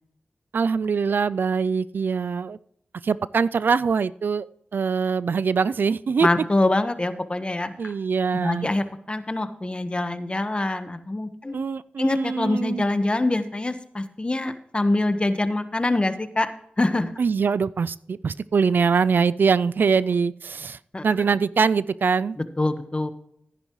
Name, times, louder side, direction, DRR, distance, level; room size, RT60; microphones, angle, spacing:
voice 1, 0.5-2.6 3.0-4.5 4.7-6.3 7.8-8.7 11.5-12.9 17.2-20.8 21.0-22.4, right 5 dB, 70° right, 18 dB, 0.3 m, -23 dB
voice 2, 6.2-7.9 8.4-11.5 12.0-16.5 16.8-17.1 20.9-21.0 22.4-23.1, left 2 dB, 30° left, 9 dB, 1.3 m, -24 dB
14.0 x 10.5 x 3.1 m, 0.71 s
cardioid pair, 50°, 3 cm